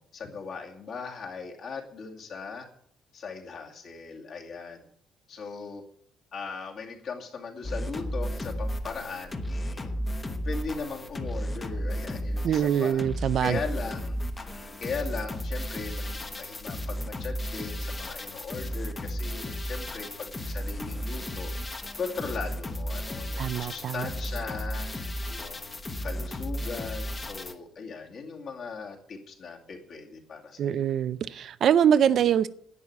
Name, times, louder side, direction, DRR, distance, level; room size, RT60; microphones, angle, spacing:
voice 1, 0.1-2.7 3.1-4.8 5.3-5.8 6.3-9.9 10.4-13.1 13.4-30.9, left 4 dB, 45° left, 0 dB, 2.4 m, -38 dB
sound 1, 7.6-27.5, equal, 15° left, 1.0 m, -34 dB
voice 2, 12.4-13.6 23.4-24.1 30.6-32.5, right 9 dB, 45° right, 14 dB, 0.5 m, -24 dB
11.0 x 9.5 x 8.5 m, 0.67 s
cardioid pair, 175°, 0 cm